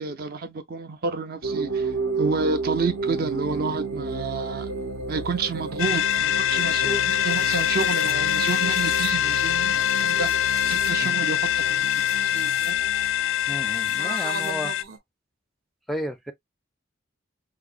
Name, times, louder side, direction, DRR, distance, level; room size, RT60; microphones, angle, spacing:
voice 1, 0.0-4.7 5.1-10.3 10.6-11.9 12.3-12.8 14.0-15.0, right 4 dB, 45° right, 0.5 m, -30 dB
sound 1, 1.4-15.0, right 3 dB, 70° right, 0.8 m, -33 dB
sound 2, 5.8-14.8, left 11 dB, 70° left, 0.3 m, -24 dB
voice 2, 13.5-14.7 15.9-16.3, equal, ahead, 0.4 m, -33 dB
4.8 x 2.0 x 2.3 m
head